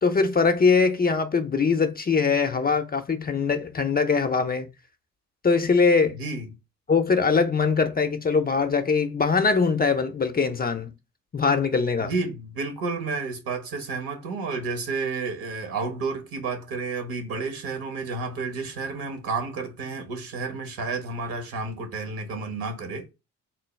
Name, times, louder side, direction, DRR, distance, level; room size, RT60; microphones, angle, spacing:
voice 1, 0.0-4.7 5.4-6.1 6.9-10.9 11.3-12.1, left 5 dB, 25° left, 0.5 m, -22 dB
voice 2, 6.1-6.5 12.0-23.1, right 4 dB, 60° right, 1.2 m, -31 dB
3.7 x 2.2 x 3.2 m
hypercardioid pair, 50°, 39 cm